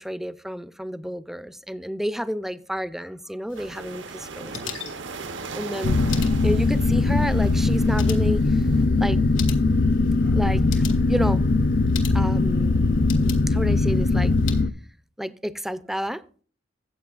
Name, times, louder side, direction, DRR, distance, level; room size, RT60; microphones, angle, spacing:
voice 1, 0.0-4.8 5.5-6.0 6.4-9.2 10.2-11.4 12.1-14.3 15.2-16.2, equal, ahead, 14 dB, 0.4 m, -30 dB
sound 1, 3.5-14.6, left 8 dB, 90° left, 1.5 m, -42 dB
sound 2, 3.5-8.9, right 4 dB, 75° right, 0.8 m, -39 dB
sound 3, 5.8-14.7, left 3 dB, 55° left, 0.5 m, -20 dB
14.5 x 8.1 x 2.4 m, 0.41 s
head